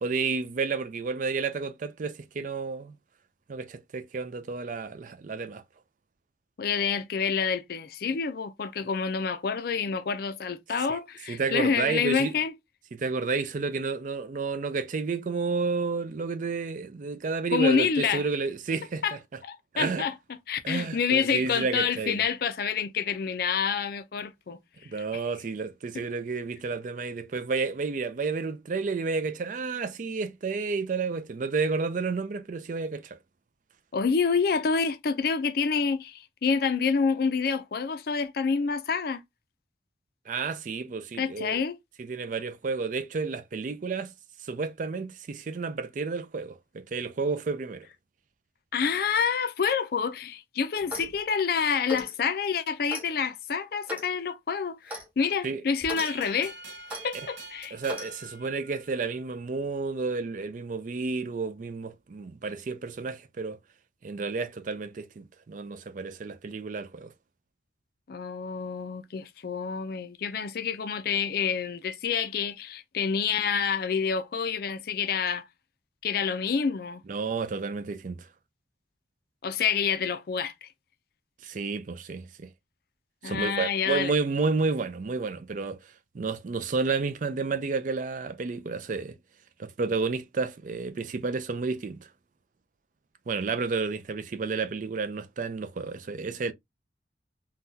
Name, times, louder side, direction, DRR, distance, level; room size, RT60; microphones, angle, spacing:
voice 1, 0.0-3.0 3.5-5.6 10.9-11.0 11.3-12.3 12.9-19.2 19.7-20.1 20.6-22.2 24.8-33.2 40.3-41.6 42.0-44.1 44.4-47.9 55.4-55.6 57.7-63.6 64.0-67.1 77.1-78.3 81.4-82.5 83.2-85.8 86.1-89.2 89.6-92.1 93.3-96.5, right 4 dB, 45° right, 0.4 m, -31 dB
voice 2, 6.6-12.5 17.5-18.2 19.0-19.2 19.4-20.1 20.5-24.6 25.9-26.0 33.9-39.2 41.2-41.7 48.7-56.5 57.0-57.8 68.1-75.4 76.0-77.0 79.4-80.7 83.2-84.1, left 6 dB, 55° left, 0.4 m, -28 dB
Clock, 50.8-51.2 51.8-52.1 52.9-53.1 53.9-54.1 54.9-55.1 55.8-56.1 56.9-57.0 57.9-58.1, left 1 dB, 10° right, 1.0 m, -37 dB
sound 1, 56.0-59.2, right 3 dB, 80° right, 1.2 m, -44 dB
3.8 x 2.2 x 2.6 m
head